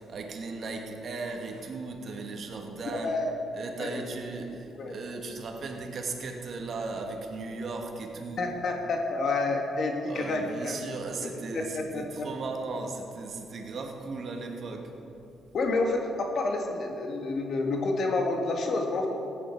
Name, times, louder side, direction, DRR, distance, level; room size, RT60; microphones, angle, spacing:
voice 1, 0.0-3.2 3.5-8.5 10.1-15.0 15.3-15.4, right 3 dB, 55° right, 1.6 m, -37 dB
voice 2, 8.4-10.8 11.5-12.3 15.5-19.1, left 3 dB, 60° left, 1.8 m, -29 dB
15.5 x 9.2 x 4.6 m
cardioid pair, 90°, 0 cm